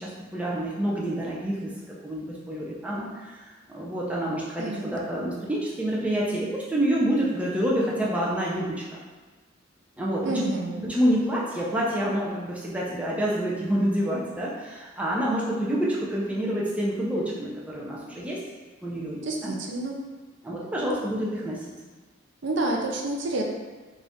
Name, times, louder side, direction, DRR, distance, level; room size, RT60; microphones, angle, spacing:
voice 1, 0.0-1.7 2.0-8.7 10.0-10.4 10.9-18.4 18.8-19.5 20.4-21.6, equal, 5° right, -5 dB, 0.5 m, -27 dB
voice 2, 4.6-4.9 10.2-10.9 19.2-20.0 22.4-23.4, right 2 dB, 60° right, 0 dB, 0.5 m, -28 dB
3.9 x 2.5 x 3.5 m, 1.3 s
head